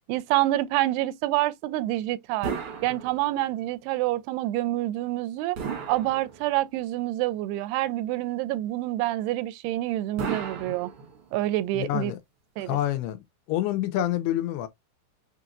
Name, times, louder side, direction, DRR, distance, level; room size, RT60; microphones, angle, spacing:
voice 1, 0.1-2.5 2.8-5.6 5.9-10.9 11.3-12.1 12.6-12.8, right 16 dB, 85° right, 2.5 m, -27 dB
sound 1, 2.4-3.6 5.5-6.8 10.2-11.5, right 5 dB, 60° right, 1.4 m, -35 dB
voice 2, 11.7-12.2 12.6-13.2 13.5-14.7, left 13 dB, 80° left, 2.7 m, -27 dB
6.5 x 2.9 x 2.5 m
omnidirectional pair, 4.6 m